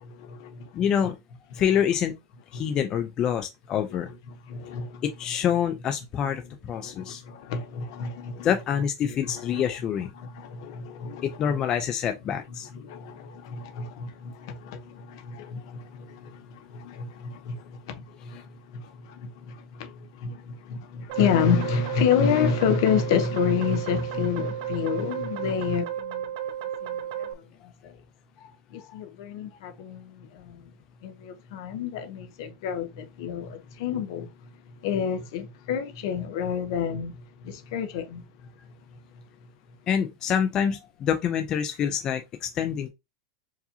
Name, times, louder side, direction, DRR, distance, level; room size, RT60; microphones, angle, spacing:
voice 1, 0.0-0.9 2.5-2.6 3.9-4.0 4.5-5.0 6.4-6.5 6.8-8.5 9.0-9.6 10.2-11.7 12.7-26.2 26.8-26.9 27.8-27.9 28.7-30.6 31.0-34.3 34.8-38.2, left 7 dB, 65° left, 0.8 m, -29 dB
voice 2, 0.7-1.2 1.5-2.2 2.5-4.1 5.0-6.4 6.7-7.2 8.4-10.1 11.2-12.7 28.4-28.5 28.9-29.0 39.9-42.9, left 8 dB, 30° left, 0.4 m, -26 dB
sound 1, 21.1-27.3, right 10 dB, 65° right, 0.6 m, -33 dB
4.7 x 2.7 x 2.8 m
supercardioid pair, 145°, 2 cm